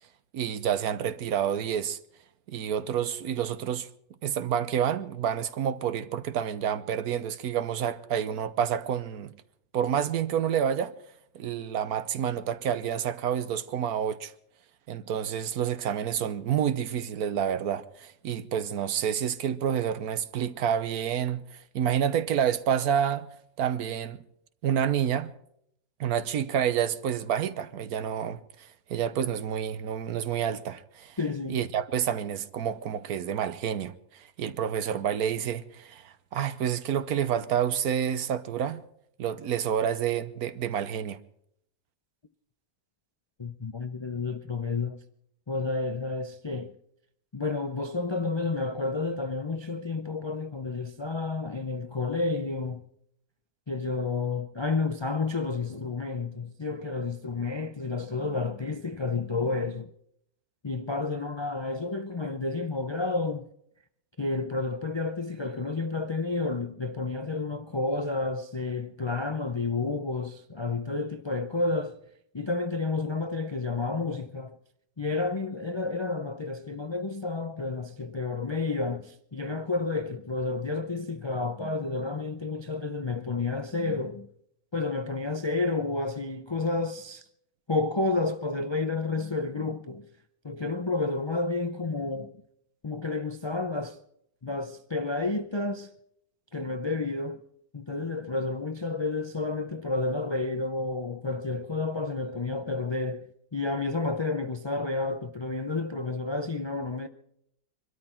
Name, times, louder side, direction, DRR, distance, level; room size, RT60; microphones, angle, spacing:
voice 1, 0.3-2.0 2.5-3.9 4.2-9.3 9.7-10.9 11.3-14.3 14.9-23.3 23.6-24.2 24.6-25.3 26.0-31.2 31.5-38.8 39.2-41.2, right 9 dB, 75° right, 1.3 m, -29 dB
voice 2, 31.2-31.6 43.4-45.0 45.5-46.7 47.3-52.8 53.7-59.9 60.6-63.5 64.2-72.0 72.3-74.6 75.0-84.3 84.7-87.2 87.7-90.1 90.4-92.4 92.8-94.0 94.4-95.9 96.5-97.4 97.7-107.1, left 3 dB, 40° left, 0.4 m, -30 dB
24.0 x 13.0 x 4.4 m
omnidirectional pair, 1.6 m